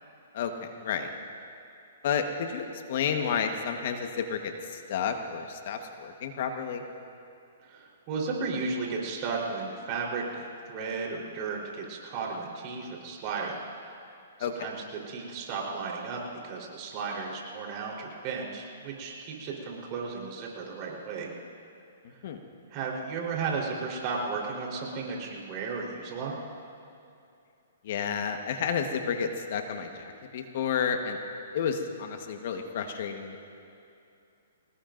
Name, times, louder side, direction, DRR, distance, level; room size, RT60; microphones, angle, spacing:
voice 1, 0.3-1.1 2.0-6.8 14.4-14.7 22.0-22.4 27.8-31.2 31.5-33.4, left 7 dB, 55° left, 5 dB, 1.3 m, -31 dB
voice 2, 7.6-13.9 14.4-14.8 15.1-21.3 22.7-26.4, right 4 dB, 35° right, -2 dB, 3.9 m, -34 dB
24.5 x 19.5 x 2.6 m, 2.6 s
hypercardioid pair, 140°, 0 cm